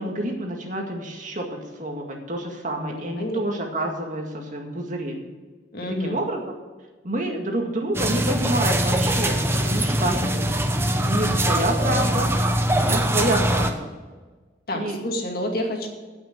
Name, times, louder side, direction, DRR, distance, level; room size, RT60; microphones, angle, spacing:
voice 1, 0.0-5.2 6.0-6.6 7.0-10.1 11.0-12.3 12.7-13.9 14.7-15.0, right 1 dB, 45° right, 2 dB, 2.1 m, -28 dB
voice 2, 2.7-3.4 5.7-6.2 10.0-10.4 14.7-15.9, left 1 dB, 55° left, 2 dB, 2.2 m, -29 dB
sound 1, 7.9-13.7, right 1 dB, 15° right, 0.9 m, -22 dB
16.0 x 6.3 x 6.2 m, 1.3 s
head